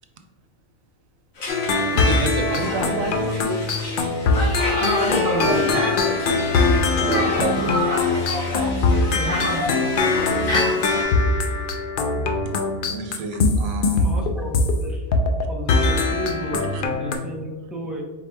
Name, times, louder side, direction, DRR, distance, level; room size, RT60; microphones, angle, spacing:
Conversation, 1.4-11.0, left 1 dB, 85° left, 1.4 m, -30 dB
sound 1, 1.5-14.8 15.1-15.4 15.7-17.2, left 3 dB, 65° left, 0.5 m, -22 dB
voice 1, 1.9-3.6 7.0-7.6 12.8-14.1 16.7-16.8, right 3 dB, 85° right, 6 dB, 1.0 m, -29 dB
voice 2, 4.7-6.1 6.7-8.4 9.1-10.6 10.9-11.0, right 1 dB, 45° right, -3 dB, 0.9 m, -28 dB
voice 3, 9.1-10.1 14.0-15.1 15.5-18.0, right 1 dB, ahead, -2 dB, 0.3 m, -33 dB
4.7 x 3.9 x 2.2 m, 1.3 s
omnidirectional pair, 1.4 m